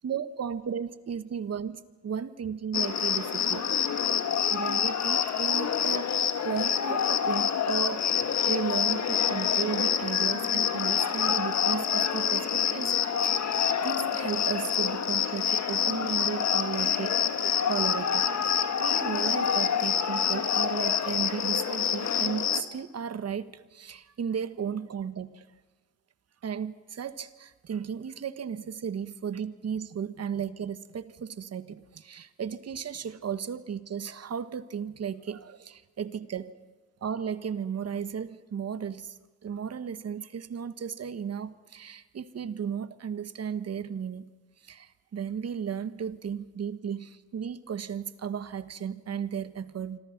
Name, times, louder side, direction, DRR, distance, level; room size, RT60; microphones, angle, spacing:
voice 1, 0.0-3.7 4.5-8.0 8.5-12.9 13.2-17.2 17.7-25.4 26.4-36.5 37.0-44.3 44.6-50.0, right 7 dB, 55° right, 12 dB, 1.3 m, -35 dB
Cricket, 2.7-22.6, left 7 dB, 65° left, 1.7 m, -27 dB
26.5 x 25.0 x 5.9 m, 1.3 s
cardioid pair, 75°, 30 cm